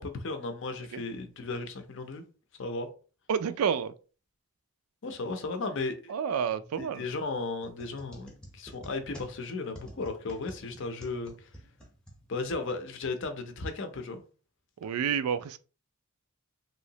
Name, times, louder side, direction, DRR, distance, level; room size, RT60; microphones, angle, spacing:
voice 1, 0.0-2.2 2.6-2.9 5.0-6.1 6.8-11.5 12.3-14.2, left 3 dB, 55° left, 0.5 m, -35 dB
voice 2, 3.3-3.9 6.1-7.0 14.8-15.6, right 7 dB, 80° right, 0.3 m, -29 dB
sound 1, 7.6-12.7, equal, 5° left, 0.6 m, -49 dB
3.1 x 2.8 x 2.7 m
head